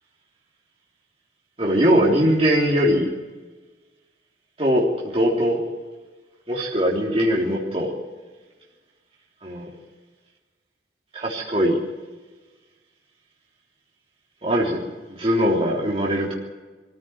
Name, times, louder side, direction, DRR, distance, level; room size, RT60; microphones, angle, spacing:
voice 1, 1.6-3.1 4.6-5.6 6.5-7.9 9.4-9.7 11.1-11.8 14.4-14.8 15.1-16.4, equal, 35° right, -4 dB, 3.4 m, -21 dB
24.0 x 15.5 x 9.4 m, 1.3 s
head